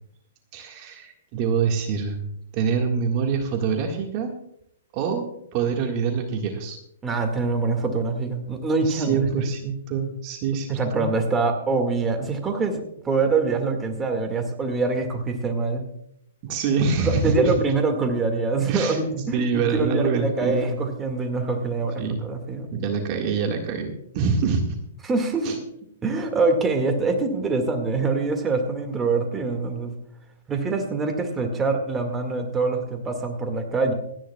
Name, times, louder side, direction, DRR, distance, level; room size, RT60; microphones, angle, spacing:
voice 1, 0.5-4.3 4.9-5.2 5.5-6.8 8.9-11.1 16.4-17.5 18.7-19.0 19.3-20.8 22.0-22.2 22.7-24.8 25.4-25.6, right 5 dB, 40° right, 3 dB, 1.8 m, -25 dB
voice 2, 7.0-9.5 10.7-15.9 17.0-22.7 25.0-25.5 26.0-30.0 30.5-33.9, right 3 dB, 15° right, 4 dB, 1.9 m, -24 dB
26.0 x 10.0 x 2.3 m, 0.72 s
hypercardioid pair, 140°, 0 cm